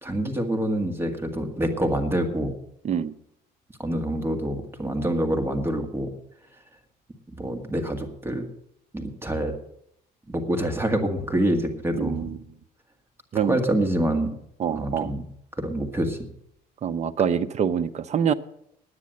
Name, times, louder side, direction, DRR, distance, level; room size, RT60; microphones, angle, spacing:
voice 1, 0.0-2.5 3.8-6.1 7.3-8.5 8.9-9.5 10.3-12.3 13.3-14.3 14.7-15.3 15.5-16.3, right 1 dB, 15° right, 4 dB, 1.9 m, -26 dB
voice 2, 12.0-12.4 13.3-13.6 14.6-15.1 16.8-18.3, right 8 dB, 40° right, 13 dB, 0.7 m, -25 dB
9.9 x 9.5 x 7.7 m, 0.73 s
cardioid pair, 110°, 17 cm